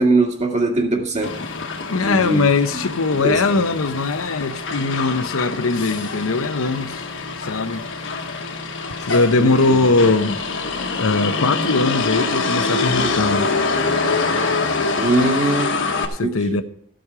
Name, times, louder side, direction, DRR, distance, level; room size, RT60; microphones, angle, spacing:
voice 1, 0.0-1.3 1.9-2.4 3.2-3.6 9.4-9.9 15.0-15.7 16.2-16.6, right 2 dB, 35° right, 2.0 m, -21 dB
Motor vehicle (road), 1.2-16.1, left 4 dB, 65° left, 1.4 m, -25 dB
voice 2, 1.9-7.0 7.4-7.9 9.0-10.4 11.0-13.5 16.1-16.6, left 3 dB, 85° left, 0.9 m, -20 dB
15.0 x 7.7 x 4.9 m
head